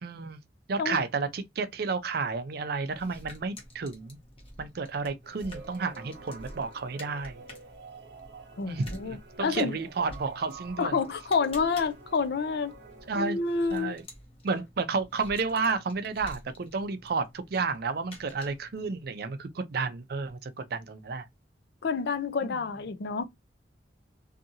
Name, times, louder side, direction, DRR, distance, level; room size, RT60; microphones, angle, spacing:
voice 1, 0.0-0.4 0.7-4.2 4.6-7.4 8.7-11.0 13.1-13.4 13.7-14.0 14.4-21.3 22.4-22.7, right 4 dB, 60° right, 0.5 m, -31 dB
sound 1, 2.9-18.9, left 1 dB, 35° left, 1.1 m, -50 dB
sound 2, 5.2-14.0, right 4 dB, 85° right, 0.8 m, -49 dB
voice 2, 8.6-9.8 10.8-12.7 13.1-14.0 21.8-23.2, left 5 dB, 65° left, 0.5 m, -28 dB
2.7 x 2.5 x 2.6 m
head